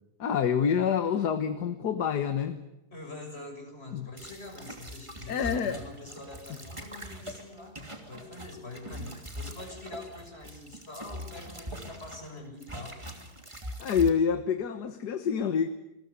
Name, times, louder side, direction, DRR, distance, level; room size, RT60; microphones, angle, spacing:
voice 1, 0.2-2.6 3.9-4.1 5.3-5.8 13.8-15.7, left 7 dB, 80° left, 9 dB, 1.8 m, -27 dB
voice 2, 2.9-13.0, left 2 dB, 40° left, 3 dB, 6.5 m, -44 dB
sound 1, 4.2-12.3 12.6-14.1, equal, 20° right, 3.0 m, -42 dB
28.0 x 21.0 x 8.1 m, 0.90 s
omnidirectional pair, 1.7 m